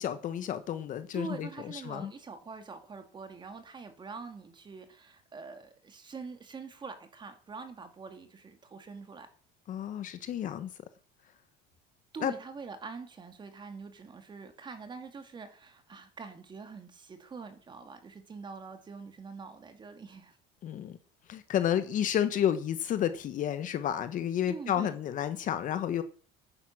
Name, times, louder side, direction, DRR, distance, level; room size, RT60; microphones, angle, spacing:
voice 1, 0.0-2.1 9.7-10.7 12.2-12.3 20.6-21.0 21.3-26.0, left 10 dB, 40° left, 1.2 m, -31 dB
voice 2, 1.1-9.3 12.1-20.4 24.5-24.9, right 4 dB, 25° right, 2.3 m, -44 dB
10.5 x 9.7 x 6.0 m
cardioid pair, 135°, 20 cm